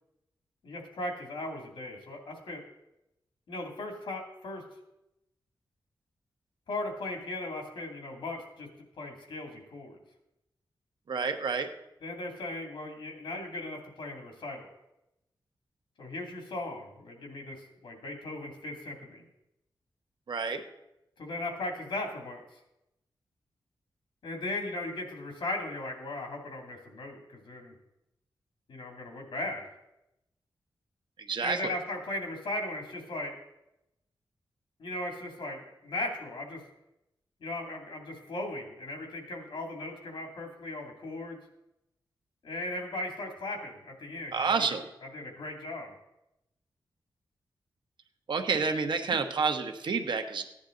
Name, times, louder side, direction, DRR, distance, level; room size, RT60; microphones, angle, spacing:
voice 1, 0.6-2.6 3.5-4.6 6.7-8.7 9.0-10.0 12.0-14.7 16.0-19.2 21.2-22.6 24.2-27.7 28.7-29.8 31.4-33.3 34.8-36.6 37.4-41.4 42.4-44.7 45.1-46.0, left 2 dB, 85° left, 2 dB, 2.6 m, -37 dB
voice 2, 11.1-11.7 20.3-20.6 31.3-31.7 44.3-44.8 48.3-50.5, right 5 dB, 70° right, 6 dB, 1.1 m, -29 dB
15.5 x 9.9 x 3.9 m, 0.89 s
wide cardioid pair, 115°, 8 cm